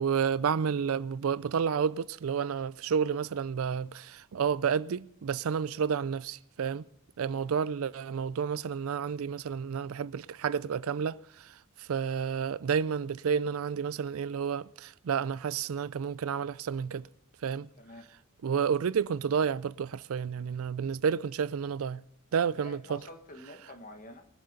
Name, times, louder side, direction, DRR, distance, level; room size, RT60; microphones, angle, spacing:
voice 1, 0.0-6.8 7.2-17.1 17.4-17.7 18.4-22.0 22.3-23.0, right 7 dB, 75° right, 0.4 m, -30 dB
voice 2, 17.8-18.1 22.5-24.3, left 1 dB, 40° left, 1.5 m, -48 dB
22.0 x 7.7 x 5.1 m
head